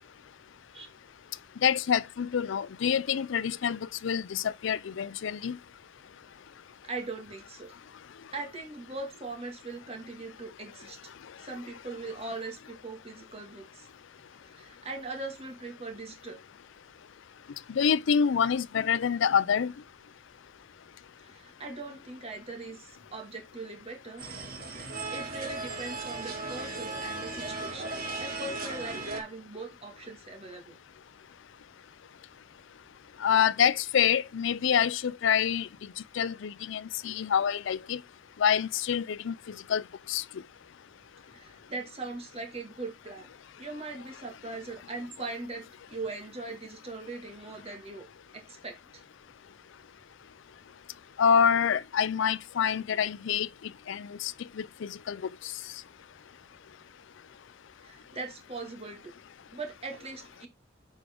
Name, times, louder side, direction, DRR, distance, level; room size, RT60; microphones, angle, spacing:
voice 1, 1.6-5.6 17.7-19.7 33.2-35.7 36.1-38.0 38.4-39.4 39.7-39.8 40.1-40.2 51.2-53.5 53.9-55.2, left 7 dB, 65° left, 0.4 m, -26 dB
voice 2, 6.8-7.7 8.3-11.1 11.4-13.9 14.5-16.4 21.2-24.2 25.1-27.9 28.2-30.8 41.3-43.3 43.6-48.0 48.5-48.7 57.8-59.1 59.5-60.5, right 3 dB, 30° right, 2.2 m, -40 dB
sound 1, 24.2-29.2, right 3 dB, 50° right, 2.8 m, -36 dB
9.7 x 5.0 x 3.8 m
head